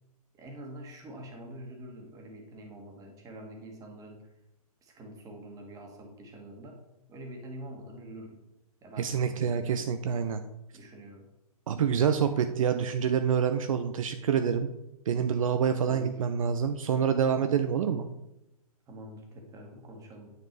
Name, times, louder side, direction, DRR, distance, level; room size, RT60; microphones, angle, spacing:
voice 1, 0.3-4.2 4.8-6.8 7.1-8.4 8.8-9.7 10.7-11.3 15.8-16.7 18.9-20.3, right 1 dB, 15° right, 2 dB, 1.7 m, -46 dB
voice 2, 9.0-10.4 11.7-14.7 15.1-18.1, right 7 dB, 60° right, 8 dB, 0.7 m, -27 dB
9.6 x 5.2 x 4.6 m, 0.89 s
hypercardioid pair, 135°, 20 cm